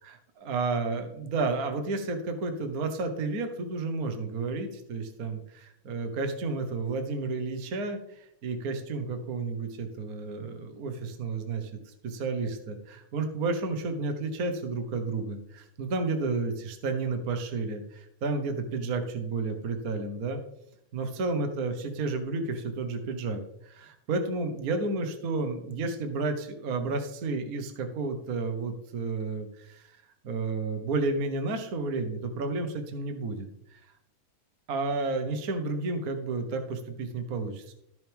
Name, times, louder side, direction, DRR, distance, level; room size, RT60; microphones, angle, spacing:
voice 1, 0.0-20.4 20.9-33.8 34.7-37.7, right 3 dB, 85° right, 7 dB, 0.8 m, -31 dB
13.5 x 6.9 x 3.5 m, 0.77 s
omnidirectional pair, 3.5 m